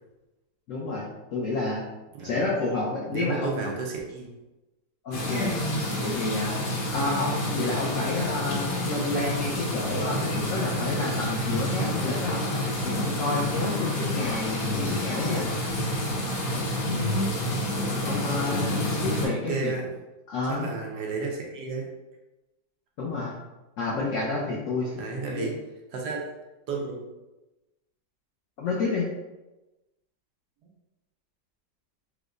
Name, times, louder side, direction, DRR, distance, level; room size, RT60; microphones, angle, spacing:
voice 1, 0.7-1.9 2.2-3.6 5.0-5.6 6.0-6.5 6.9-12.5 12.8-15.5 18.1-19.7 20.3-20.7 23.0-23.3 23.8-25.0 25.3-25.5 28.6-29.1, left 3 dB, 85° left, -4 dB, 0.7 m, -29 dB
voice 2, 3.1-4.3 19.2-19.9 20.5-21.9 24.9-25.5 25.9-26.3 26.7-27.1, right 4 dB, 70° right, -1 dB, 1.1 m, -32 dB
sound 1, 5.1-19.3, left 1 dB, 60° left, 1.1 m, -28 dB
4.7 x 2.1 x 2.5 m, 1.1 s
omnidirectional pair, 2.0 m